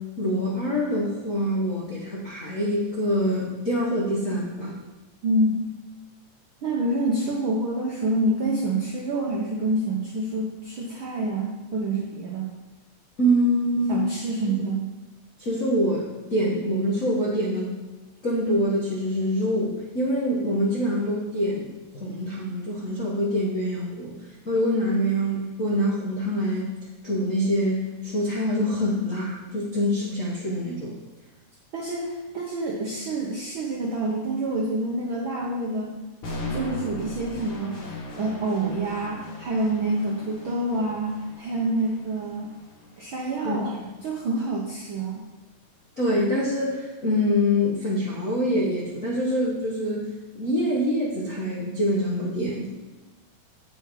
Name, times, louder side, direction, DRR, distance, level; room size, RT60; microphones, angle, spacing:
voice 1, 0.2-4.8 13.2-14.0 15.4-17.7 18.2-24.1 24.4-26.7 27.0-30.9 43.4-43.7 46.0-50.0 50.3-52.7, equal, 85° left, -4 dB, 0.7 m, -25 dB
voice 2, 5.2-5.6 6.6-12.5 13.9-14.9 31.7-35.9 36.4-42.5 43.0-45.2, right 2 dB, 75° right, -3 dB, 1.1 m, -27 dB
sound 1, 36.2-44.2, left 2 dB, 50° left, 2.0 m, -39 dB
7.9 x 6.3 x 4.7 m, 1.2 s
omnidirectional pair, 3.6 m